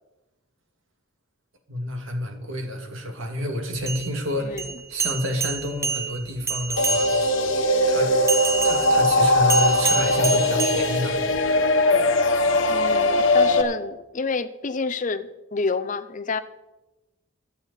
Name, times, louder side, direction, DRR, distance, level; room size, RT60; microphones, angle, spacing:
voice 1, 1.7-7.1 7.9-8.2 8.6-11.2, equal, 65° right, 4 dB, 2.2 m, -29 dB
sound 1, 3.8-7.4 8.3-11.5, right 4 dB, 15° right, 0.6 m, -29 dB
sound 2, 6.8-13.6, left 1 dB, 65° left, 1.3 m, -20 dB
voice 2, 12.7-16.4, left 4 dB, 35° left, 12 dB, 0.5 m, -28 dB
23.5 x 8.2 x 4.0 m, 1.0 s
head